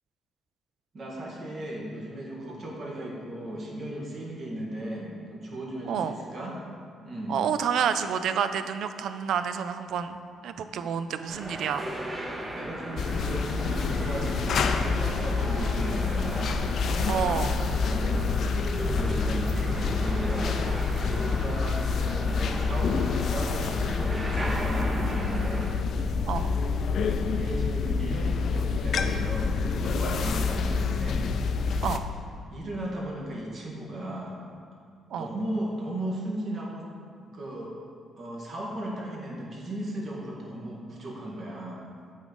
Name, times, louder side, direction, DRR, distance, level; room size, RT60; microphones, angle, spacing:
voice 1, 0.9-6.6 7.0-7.4 12.5-16.6 17.8-18.4 18.8-20.6 20.9-25.8 26.9-31.3 31.6-31.9 32.5-34.4 35.1-36.9 37.2-37.7 38.2-41.9, right 1 dB, 50° right, -3 dB, 1.6 m, -36 dB
voice 2, 7.3-10.2 10.4-11.9 17.1-17.6 26.2-26.5 30.2-30.4 31.8-32.0 35.1-35.3, right 7 dB, 75° right, 10 dB, 0.4 m, -29 dB
sound 1, 11.3-25.7, right 1 dB, 20° right, 0.9 m, -36 dB
sound 2, 13.0-32.0, left 4 dB, 65° left, 0.4 m, -27 dB
8.2 x 4.0 x 5.3 m, 2.2 s
cardioid pair, 90°, 0 cm